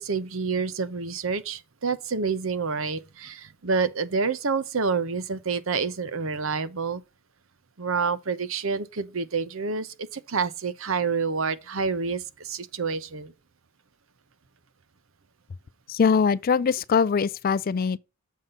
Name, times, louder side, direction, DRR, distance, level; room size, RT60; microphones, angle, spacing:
voice 1, 0.0-7.0 7.8-13.3, right 5 dB, 65° right, 0.7 m, -28 dB
voice 2, 15.9-18.0, left 6 dB, 40° left, 0.3 m, -22 dB
7.2 x 5.6 x 3.7 m
head